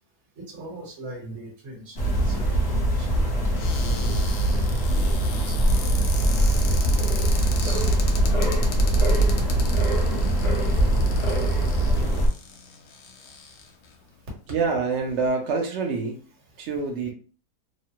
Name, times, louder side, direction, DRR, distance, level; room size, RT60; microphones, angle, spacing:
voice 1, 0.4-4.4 4.9-7.9 14.5-14.6, right 1 dB, 45° right, -2 dB, 1.3 m, -42 dB
sound 1, 2.0-12.3, right 1 dB, 45° left, 1.0 m, -22 dB
Cupboard open or close, 3.5-13.9 14.6-14.7 14.9-15.3, left 5 dB, 70° left, 1.1 m, -38 dB
voice 2, 14.5-16.2 16.6-17.1, right 4 dB, 75° right, 1 dB, 0.6 m, -26 dB
3.2 x 2.1 x 2.8 m, 0.40 s
omnidirectional pair, 1.8 m